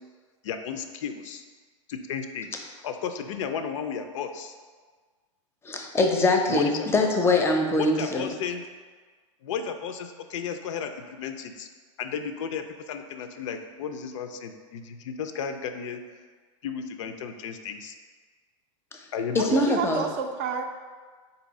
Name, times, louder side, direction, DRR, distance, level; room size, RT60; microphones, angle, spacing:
voice 1, 0.4-1.4 1.9-4.5 6.5-6.9 7.8-8.6 9.4-11.7 12.0-16.0 16.6-17.9 19.1-19.7, left 6 dB, 65° left, 7 dB, 0.4 m, -33 dB
voice 2, 5.6-8.3 19.3-20.0, left 2 dB, 15° left, 2 dB, 0.5 m, -23 dB
voice 3, 19.4-20.6, right 7 dB, 45° right, 5 dB, 0.4 m, -29 dB
3.9 x 2.7 x 4.0 m, 1.5 s
hypercardioid pair, 105°, 17 cm